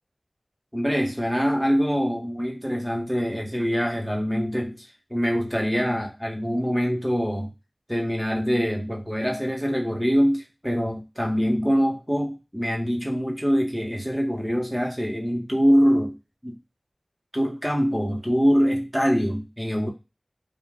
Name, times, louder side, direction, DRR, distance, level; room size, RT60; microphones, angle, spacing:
voice 1, 0.7-7.5 7.9-16.2 16.4-16.6 17.3-19.9, equal, 5° right, 1 dB, 0.9 m, -24 dB
5.2 x 2.2 x 3.5 m, 0.27 s
wide cardioid pair, 55°, 0 cm